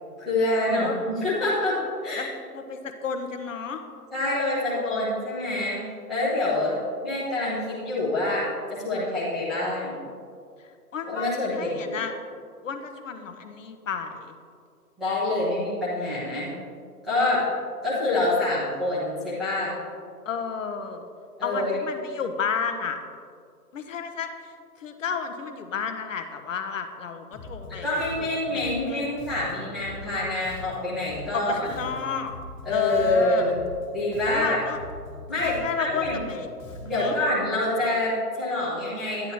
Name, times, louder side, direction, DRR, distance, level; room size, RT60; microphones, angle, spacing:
voice 1, 0.2-1.8 2.0-2.3 4.1-5.8 6.1-6.8 7.0-10.0 11.1-11.9 15.0-16.5 17.0-17.4 17.8-19.7 21.4-21.8 27.8-31.7 32.6-33.5 33.9-34.6 35.3-36.2 36.8-39.3, left 2 dB, ahead, -13 dB, 0.6 m, -26 dB
voice 2, 2.2-3.8 4.7-5.1 10.6-12.1 12.6-14.4 20.3-21.1 21.4-23.0 23.7-24.5 24.8-27.9 28.2-29.1 31.3-32.3 32.7-33.5 34.2-34.8 35.3-36.5 36.9-37.2, left 6 dB, 50° left, 6 dB, 0.9 m, -31 dB
Bass guitar, 27.3-37.2, left 2 dB, 30° left, 1.8 m, -42 dB
11.0 x 10.0 x 2.9 m, 2.3 s
figure-of-eight pair, 140°, 48 cm